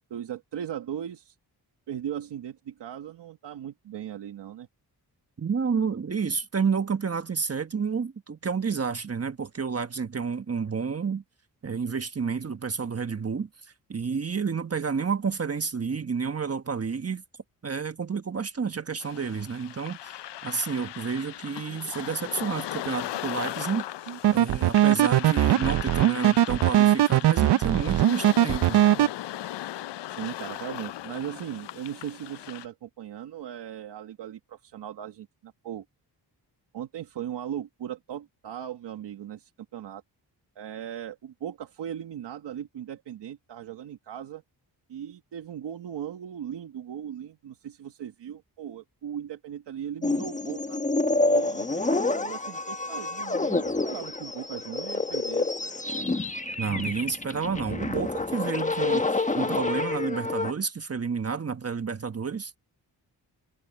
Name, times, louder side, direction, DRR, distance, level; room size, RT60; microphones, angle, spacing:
voice 1, 0.1-1.3 1.9-4.7 30.1-35.8 36.7-40.0 40.5-44.4 44.9-50.8 51.3-55.8, right 10 dB, 90° right, 1.6 m, -38 dB
voice 2, 5.4-11.2 11.6-13.5 13.9-17.2 17.6-23.8 24.3-29.1 56.6-62.6, right 5 dB, 35° right, 1.3 m, -30 dB
sound 1, 19.0-32.7, left 13 dB, 85° left, 0.6 m, -38 dB
sound 2, 24.1-29.1, right 13 dB, 75° right, 0.6 m, -20 dB
sound 3, 50.0-60.5, left 2 dB, 20° left, 1.3 m, -28 dB
cardioid pair, 85°, 41 cm